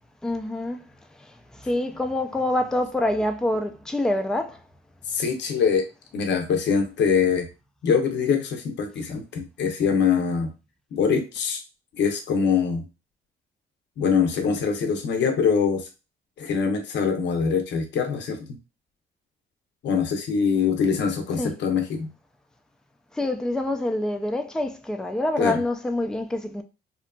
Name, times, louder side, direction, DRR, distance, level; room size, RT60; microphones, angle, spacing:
voice 1, 0.2-0.8 1.2-4.6 21.4-21.5 23.1-26.6, left 1 dB, 5° left, 0.3 m, -26 dB
voice 2, 5.1-5.8 6.1-7.5 7.8-10.5 10.9-11.6 12.0-12.9 14.0-15.9 16.4-18.5 19.8-22.1 25.4-25.6, left 6 dB, 65° left, 0.6 m, -23 dB
2.7 x 2.4 x 2.2 m
cardioid pair, 90°, 20 cm